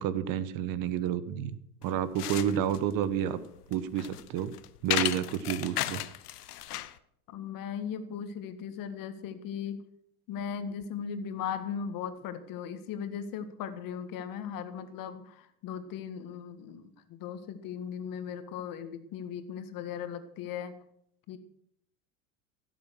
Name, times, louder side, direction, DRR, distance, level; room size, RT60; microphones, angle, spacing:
voice 1, 0.0-3.4 3.7-4.5 4.8-6.0, right 9 dB, 45° right, 15 dB, 1.2 m, -30 dB
Broken plates, 1.8-7.0, left 14 dB, 80° left, 0.9 m, -35 dB
voice 2, 7.3-9.8 10.3-20.8 21.3-21.4, left 7 dB, 45° left, 10 dB, 1.8 m, -38 dB
16.5 x 7.9 x 6.5 m, 0.73 s
hypercardioid pair, 90°, 46 cm